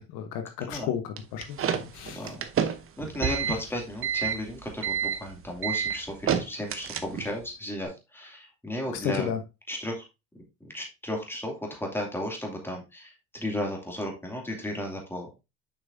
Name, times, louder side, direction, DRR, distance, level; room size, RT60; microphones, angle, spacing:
voice 1, 0.0-2.3 8.9-9.4, left 9 dB, 70° left, 6 dB, 1.1 m, -33 dB
sound 1, 1.2-7.4, right 8 dB, 35° right, 0.9 m, -29 dB
voice 2, 3.0-9.3 9.7-10.0 10.6-15.4, left 1 dB, 5° left, 0 dB, 2.5 m, -34 dB
7.1 x 5.5 x 2.7 m, 0.26 s
supercardioid pair, 105°, 36 cm